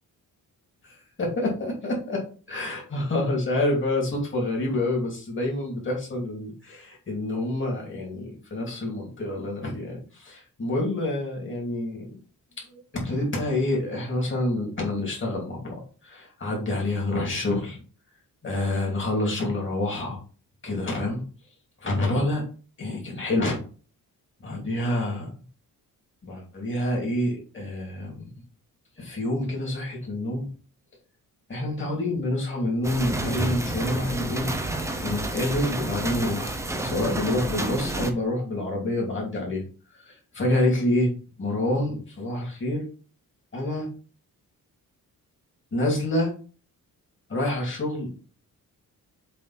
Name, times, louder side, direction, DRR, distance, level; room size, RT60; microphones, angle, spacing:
voice 1, 0.8-2.2 2.5-12.1 12.7-17.8 18.4-20.2 20.6-21.2 21.8-22.4 22.8-23.6 24.4-25.3 26.2-28.3 29.0-30.5 31.5-34.5 35.0-36.6 36.8-39.6 39.9-41.1 41.4-42.8 43.5-43.9 45.7-46.3 47.3-48.2, left 1 dB, 35° left, -2 dB, 2.8 m, -27 dB
sound 1, 32.8-38.1, right 2 dB, 10° right, 0.8 m, -30 dB
7.3 x 3.5 x 4.3 m, 0.38 s
wide cardioid pair, 155°, 35 cm